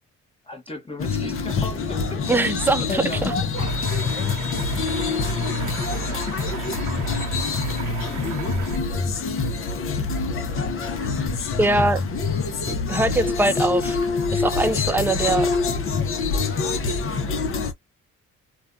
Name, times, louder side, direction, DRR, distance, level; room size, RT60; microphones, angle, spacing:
voice 1, 0.4-2.3 2.9-3.3 4.1-4.4 5.0-7.0 8.1-8.3 11.1-11.5, left 2 dB, 20° left, 1.2 m, -38 dB
sound 1, 1.0-17.7, left 4 dB, 45° left, 0.7 m, -25 dB
voice 2, 2.3-3.0 3.9-4.1 11.6-12.0 12.7-14.0 14.3-15.5, right 2 dB, 5° right, 0.3 m, -22 dB
sound 2, 3.5-8.8, right 8 dB, 75° right, 0.8 m, -37 dB
2.5 x 2.2 x 2.5 m
cardioid pair, 90°, 30 cm